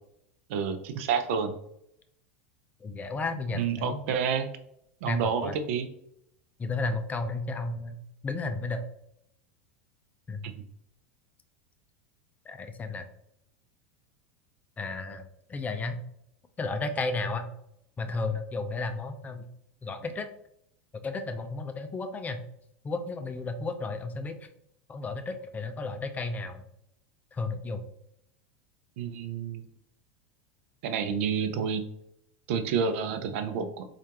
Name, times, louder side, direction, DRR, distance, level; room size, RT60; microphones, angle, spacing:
voice 1, 0.5-1.5 3.5-4.5 5.0-5.9 10.4-10.5 29.0-29.7 30.8-31.8 32.5-33.9, right 6 dB, 70° right, 8 dB, 0.5 m, -29 dB
voice 2, 2.8-4.0 5.1-5.6 6.6-8.0 8.2-8.8 10.3-10.5 12.5-13.1 14.8-15.2 15.5-16.0 16.6-17.5 18.0-19.4 19.8-20.3 21.0-22.4 22.8-24.4 24.9-26.6 27.3-27.8, left 3 dB, 20° left, 7 dB, 0.5 m, -33 dB
4.4 x 2.5 x 2.8 m, 0.73 s
hypercardioid pair, 105°, 7 cm